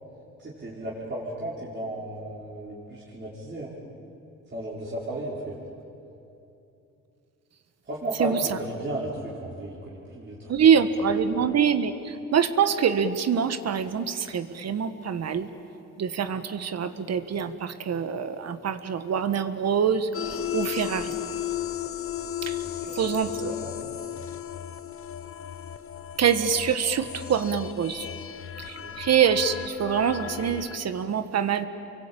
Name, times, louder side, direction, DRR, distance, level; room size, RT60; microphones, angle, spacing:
voice 1, 0.4-3.7 4.5-5.6 7.9-10.5 11.3-11.4 22.6-24.0 28.6-29.0, right 1 dB, 35° right, -7 dB, 5.3 m, -35 dB
voice 2, 10.5-15.5 16.0-21.2 22.4-22.6 22.9-23.5 26.2-28.1 28.6-31.7, right 7 dB, 55° right, 10 dB, 1.6 m, -25 dB
sound 1, 20.1-30.8, left 11 dB, 45° left, 1.1 m, -35 dB
28.5 x 23.5 x 8.9 m, 2.9 s
cardioid pair, 90°, 30 cm